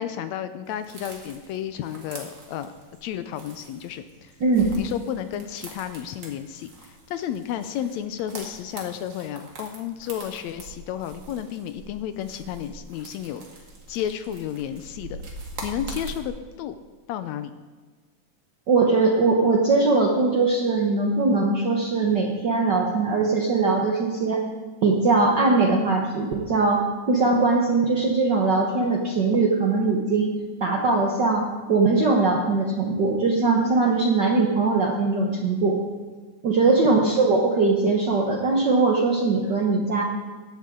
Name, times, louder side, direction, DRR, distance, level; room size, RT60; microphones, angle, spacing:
voice 1, 0.0-2.7 3.0-4.3 4.8-13.4 13.9-15.2 15.6-16.8 17.1-17.5 36.7-36.9, left 10 dB, 80° left, 11 dB, 1.6 m, -32 dB
sound 1, 0.7-16.2, right 2 dB, 40° right, 2.3 m, -43 dB
voice 2, 4.4-4.8 18.7-24.4 24.8-30.3 30.6-35.8 36.4-40.0, right 3 dB, 70° right, 0 dB, 1.0 m, -21 dB
16.5 x 11.5 x 3.8 m, 1.4 s
omnidirectional pair, 3.7 m